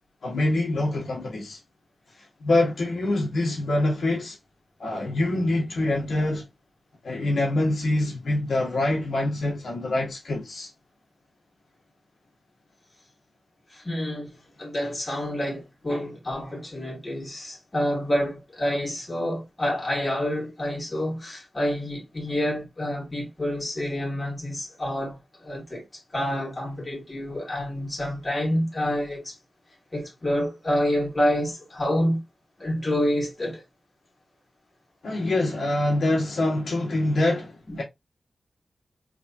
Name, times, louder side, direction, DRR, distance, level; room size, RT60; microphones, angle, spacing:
voice 1, 0.2-1.6 2.4-4.4 4.8-6.5 7.0-10.7 35.0-37.8, left 2 dB, 70° left, 1.3 m, -25 dB
voice 2, 13.7-25.8 26.1-29.3 29.9-32.2 32.6-33.6 37.7-37.8, equal, 25° left, 2.1 m, -28 dB
3.5 x 3.4 x 2.7 m
wide cardioid pair, 140°, 0 cm